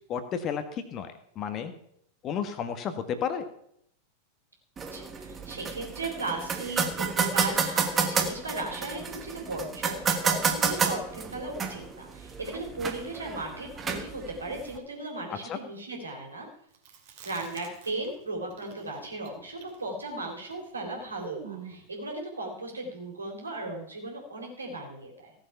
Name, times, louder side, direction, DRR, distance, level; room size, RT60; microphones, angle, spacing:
voice 1, 0.1-1.7 2.2-3.4 15.3-15.6, left 7 dB, 30° left, 9 dB, 1.4 m, -32 dB
sound 1, 4.8-14.8, right 5 dB, 20° right, 1.5 m, -30 dB
voice 2, 4.9-16.5 17.2-25.3, right 2 dB, 75° right, 1 dB, 3.5 m, -36 dB
Chewing mastication, 16.7-18.2 18.5-21.9, right 9 dB, 50° right, 2.5 m, -45 dB
16.5 x 7.2 x 5.7 m, 0.72 s
figure-of-eight pair, 90°, 0 cm